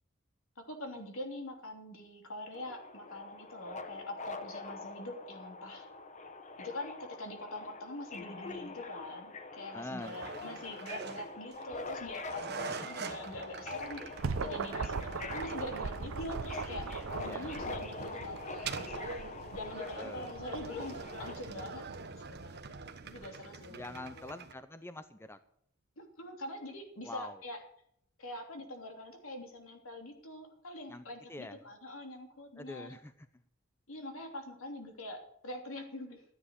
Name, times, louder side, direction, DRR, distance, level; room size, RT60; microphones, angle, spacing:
voice 1, 0.6-5.9 6.6-14.0 14.3-19.1 19.5-24.3 26.0-27.6 28.2-33.0 33.9-36.2, left 1 dB, 75° left, 3 dB, 3.1 m, -44 dB
Subway metro underground, 2.5-21.3, left 3 dB, 35° left, 1.2 m, -44 dB
voice 2, 9.7-10.2 12.8-12.9 17.2-17.5 19.9-20.4 23.7-25.4 27.0-27.4 30.9-31.6 32.6-33.3, left 2 dB, 10° left, 11 dB, 0.6 m, -45 dB
sound 1, 10.0-24.5, right 4 dB, 50° right, 1.2 m, -45 dB
sound 2, 13.8-23.3, right 4 dB, 70° right, 0.7 m, -41 dB
13.5 x 9.9 x 6.5 m, 0.68 s
head